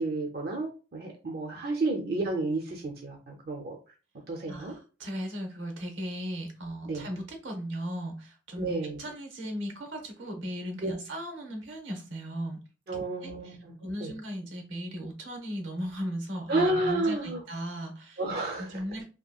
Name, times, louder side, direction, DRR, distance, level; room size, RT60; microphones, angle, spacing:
voice 1, 0.0-3.8 4.3-4.7 6.9-7.1 8.6-9.0 10.8-10.9 12.9-14.1 16.5-17.4 18.2-18.7, right 2 dB, 55° right, 2 dB, 0.5 m, -31 dB
voice 2, 4.5-8.7 9.0-12.6 13.2-18.2 18.6-19.0, equal, 90° right, 4 dB, 0.9 m, -37 dB
2.8 x 2.7 x 2.3 m, 0.35 s
head